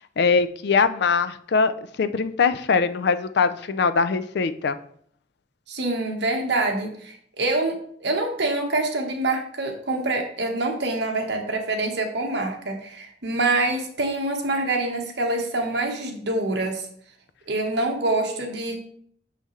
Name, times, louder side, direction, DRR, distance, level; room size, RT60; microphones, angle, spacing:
voice 1, 0.2-1.7 2.0-4.8, left 5 dB, 60° left, 12 dB, 0.4 m, -22 dB
voice 2, 5.7-16.9 17.5-18.8, right 2 dB, 65° right, 2 dB, 1.2 m, -26 dB
6.8 x 5.6 x 3.1 m, 0.63 s
head